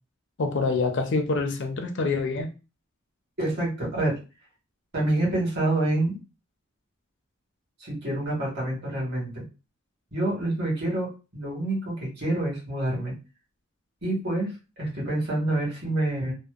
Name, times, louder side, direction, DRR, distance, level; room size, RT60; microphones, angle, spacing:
voice 1, 0.4-2.5, left 3 dB, 55° left, 5 dB, 0.4 m, -26 dB
voice 2, 3.4-4.1 4.9-6.2 7.8-9.4 10.1-11.1 11.3-13.1 14.0-16.3, right 1 dB, 50° right, -4 dB, 1.4 m, -27 dB
2.7 x 2.0 x 2.3 m, 0.31 s
head